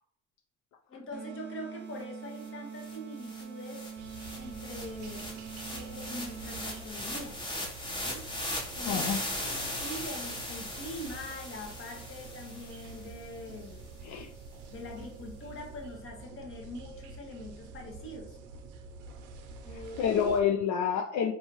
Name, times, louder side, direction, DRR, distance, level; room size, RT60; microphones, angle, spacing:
voice 1, 0.9-3.8 4.3-5.3 5.7-7.4 8.0-8.3 8.7-9.0 9.4-13.9 14.7-18.4 19.6-20.1, left 1 dB, 45° left, 1 dB, 1.1 m, -43 dB
sound 1, 1.1-7.1, right 7 dB, 40° right, 0.5 m, -44 dB
sound 2, 2.5-2.6 2.8-13.2, left 1 dB, 15° left, 1.0 m, -38 dB
sound 3, 3.9-20.4, right 3 dB, 85° right, 0.6 m, -48 dB
voice 2, 8.9-9.2 14.0-14.3 19.7-21.3, left 7 dB, 65° left, 2 dB, 0.5 m, -28 dB
4.7 x 2.7 x 3.0 m, 0.70 s
cardioid pair, 90°, 30 cm